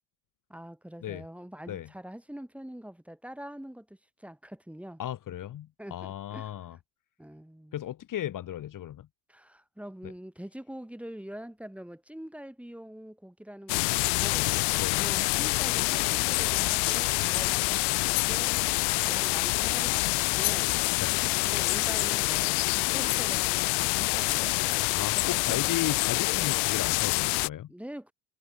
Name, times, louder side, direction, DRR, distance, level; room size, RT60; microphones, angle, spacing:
voice 1, 0.5-5.0 5.8-6.5 7.2-7.8 9.3-14.6 15.0-18.5 19.0-20.8 21.5-24.5 25.2-25.6 27.7-28.1, equal, 5° right, 3.4 m, -44 dB
voice 2, 5.0-6.8 7.7-9.1 10.0-10.1 14.8-15.0 21.0-21.2 24.9-27.7, left 12 dB, 40° left, 2.0 m, -35 dB
sound 1, 13.7-27.5, left 33 dB, 55° left, 0.6 m, -26 dB
hypercardioid pair, 90°, 49 cm